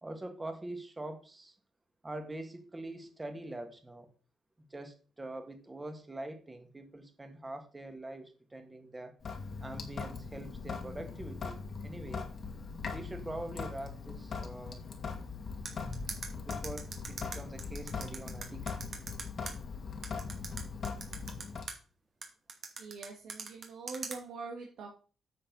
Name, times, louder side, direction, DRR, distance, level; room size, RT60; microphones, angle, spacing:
voice 1, 0.0-1.6 2.0-4.1 4.7-9.1 9.6-12.3 12.9-14.8 16.3-18.9, right 2 dB, 20° right, 6 dB, 2.0 m, -44 dB
Sink (filling or washing) / Drip, 9.2-21.7, left 5 dB, 50° left, 1.8 m, -40 dB
sound 1, 15.7-19.5 20.0-21.7 22.2-24.2, right 5 dB, 55° right, 2.3 m, -41 dB
voice 2, 22.8-24.9, right 4 dB, 80° right, 0 dB, 1.7 m, -44 dB
9.5 x 6.7 x 4.0 m, 0.37 s
cardioid pair, 100°, 0 cm